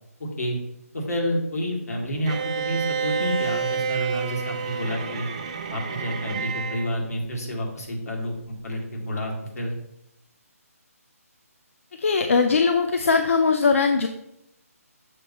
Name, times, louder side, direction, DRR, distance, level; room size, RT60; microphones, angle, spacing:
voice 1, 0.2-0.6 0.9-5.3 5.7-8.3 8.6-9.7, equal, 75° left, -2 dB, 2.1 m, -29 dB
Bowed string instrument, 2.3-6.9, right 6 dB, 25° right, 0.4 m, -29 dB
voice 2, 12.0-14.1, left 4 dB, 60° left, 6 dB, 0.4 m, -20 dB
6.6 x 2.8 x 5.3 m, 0.82 s
hypercardioid pair, 170°, 8 cm